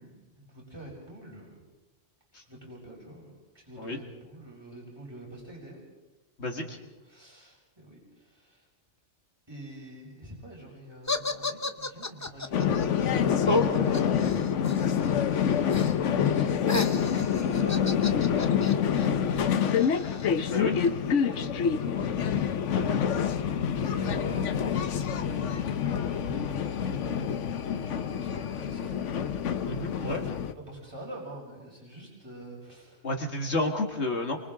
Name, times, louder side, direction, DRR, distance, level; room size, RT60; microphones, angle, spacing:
voice 1, 0.0-1.5 2.5-5.8 6.5-8.6 9.5-12.4 14.7-15.0 15.5-19.8 21.2-22.1 22.6-22.9 23.8-29.0 30.0-30.2 30.6-33.0, right 1 dB, 20° right, -3 dB, 5.8 m, -45 dB
voice 2, 6.4-6.8 13.5-13.7 20.5-20.8 22.7-23.0 29.6-30.2 33.0-34.4, left 2 dB, 65° left, 2 dB, 2.1 m, -29 dB
sound 1, 11.1-15.1 15.3-15.9 16.2-20.9, left 3 dB, 20° left, 0.5 m, -35 dB
sound 2, 12.5-30.5, left 8 dB, 85° left, 1.2 m, -27 dB
29.0 x 24.0 x 3.8 m, 1.1 s
omnidirectional pair, 1.2 m